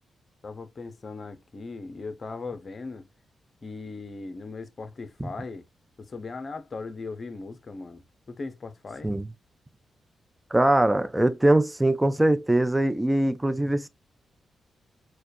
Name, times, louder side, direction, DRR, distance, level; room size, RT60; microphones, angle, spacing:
voice 1, 0.4-3.1 3.6-5.7 6.0-8.0 8.3-9.1, left 3 dB, 45° left, 0.8 m, -38 dB
voice 2, 10.5-13.9, right 1 dB, 15° right, 0.5 m, -22 dB
4.6 x 2.4 x 2.6 m
supercardioid pair, 50°, 0 cm